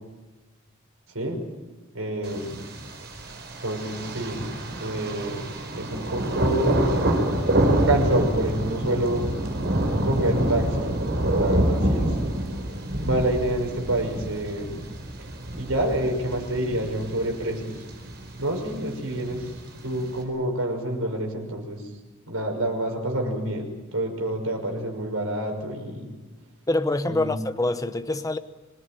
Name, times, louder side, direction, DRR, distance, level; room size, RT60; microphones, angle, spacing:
voice 1, 1.9-2.6 3.6-4.4 4.8-6.9 7.8-9.3 10.0-11.0 11.3-12.1 13.0-14.8 15.6-17.8 18.4-19.5 19.8-21.9 22.3-26.1 27.1-27.4, right 1 dB, 80° right, 6.1 m, -27 dB
Thunder, 2.2-20.2, right 1 dB, 55° right, 5.2 m, -27 dB
voice 2, 26.7-28.4, left 2 dB, 15° left, 0.9 m, -25 dB
26.0 x 21.0 x 9.2 m
head